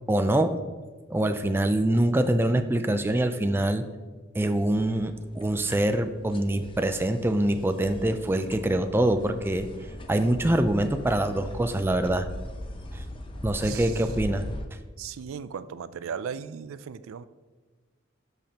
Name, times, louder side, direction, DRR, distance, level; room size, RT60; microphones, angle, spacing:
voice 1, 0.1-0.5 1.1-3.9 4.3-9.7 10.1-12.3 12.9-13.0 13.4-14.5, right 1 dB, 10° right, 8 dB, 0.4 m, -24 dB
sound 1, 4.5-14.7, left 1 dB, 25° left, 0.6 m, -40 dB
voice 2, 13.6-14.0 15.0-17.2, right 7 dB, 85° right, 14 dB, 0.4 m, -37 dB
12.0 x 5.2 x 2.9 m, 1.3 s
head